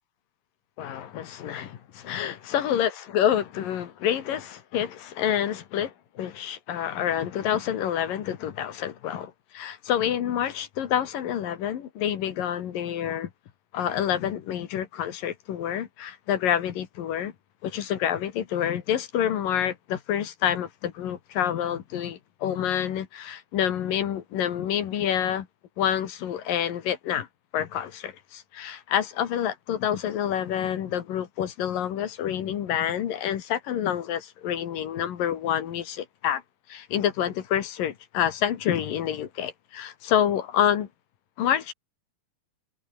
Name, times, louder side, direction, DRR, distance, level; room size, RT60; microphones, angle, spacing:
voice 1, 0.8-13.3 13.7-17.3 17.6-25.5 25.8-27.3 27.5-36.4 36.7-40.9 41.4-41.7, left 10 dB, 70° left, 3.3 m, -28 dB
omnidirectional pair, 4.3 m